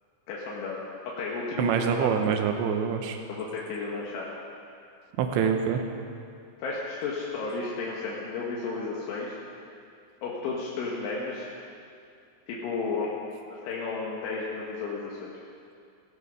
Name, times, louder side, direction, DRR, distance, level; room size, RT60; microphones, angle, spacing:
voice 1, 0.3-0.8 1.2-2.3 3.3-4.3 6.6-9.4 10.2-11.5 12.5-13.1 13.5-15.3, left 4 dB, 75° left, -4 dB, 3.9 m, -33 dB
voice 2, 1.6-3.2 5.2-5.8, right 7 dB, 80° right, 5 dB, 2.9 m, -25 dB
16.5 x 15.5 x 5.4 m, 2.4 s
omnidirectional pair, 5.6 m